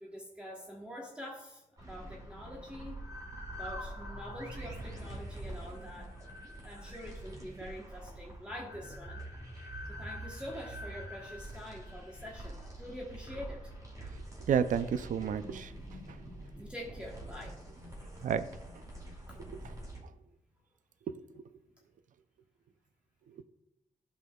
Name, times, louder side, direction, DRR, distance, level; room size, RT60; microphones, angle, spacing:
voice 1, 0.0-3.0 3.5-6.1 6.6-9.2 9.9-13.6 16.6-17.6, equal, 10° right, -3 dB, 1.2 m, -45 dB
sound 1, 1.8-20.0, right 1 dB, 25° right, 2.4 m, -45 dB
voice 2, 14.5-15.7 18.2-18.5, right 7 dB, 70° right, 13 dB, 0.4 m, -30 dB
13.0 x 5.4 x 2.3 m, 0.92 s
cardioid pair, 90°, 14 cm